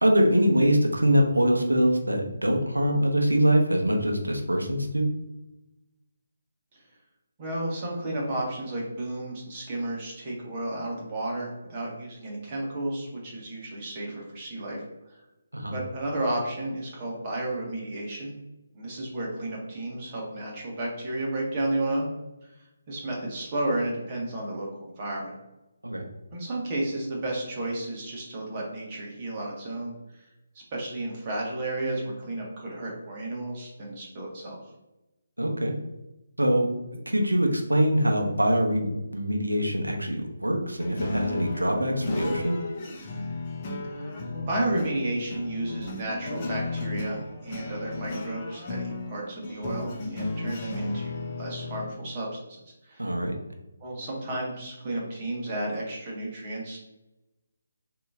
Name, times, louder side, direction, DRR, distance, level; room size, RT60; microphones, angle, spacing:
voice 1, 0.0-5.1 15.5-15.8 25.8-26.0 35.4-35.7 36.4-36.7 37.1-42.6 53.0-53.3, equal, 80° right, 2 dB, 0.9 m, -23 dB
voice 2, 7.4-14.8 15.7-18.3 18.7-22.1 22.9-24.7 25.0-25.3 26.3-30.2 30.7-34.6 43.9-52.4 52.8-53.1 53.8-56.8, right 1 dB, 30° right, -3 dB, 1.5 m, -32 dB
sound 1, 40.8-51.9, left 2 dB, 30° left, 0.7 m, -34 dB
6.5 x 3.0 x 2.5 m, 0.99 s
figure-of-eight pair, 145°, 0 cm